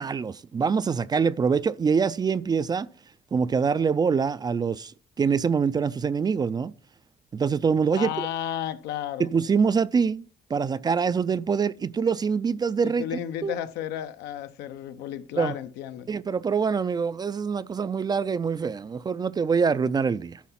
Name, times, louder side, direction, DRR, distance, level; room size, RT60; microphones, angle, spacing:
voice 1, 0.0-2.9 3.3-4.9 5.2-6.7 7.3-8.3 9.2-13.0 13.4-13.5 15.4-15.6 16.1-20.4, right 6 dB, 25° right, 0.3 m, -25 dB
voice 2, 7.9-9.3 12.8-16.1, left 11 dB, 85° left, 0.8 m, -33 dB
11.5 x 4.6 x 5.7 m
cardioid pair, 110°, 17 cm